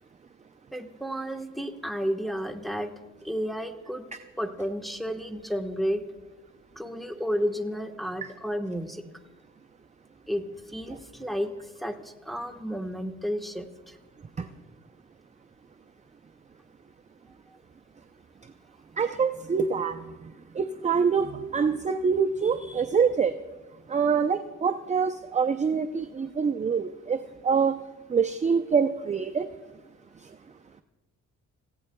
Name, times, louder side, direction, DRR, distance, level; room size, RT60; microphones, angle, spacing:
voice 1, 0.7-2.9 3.2-4.0 4.4-6.0 6.8-9.0 10.3-14.0, equal, ahead, 3 dB, 1.3 m, -32 dB
voice 2, 19.0-20.0 20.6-23.3 23.9-27.2 27.4-27.8 28.1-29.5, right 6 dB, 25° right, 8 dB, 0.5 m, -25 dB
29.5 x 16.0 x 2.3 m, 1.2 s
cardioid pair, 90°, 30 cm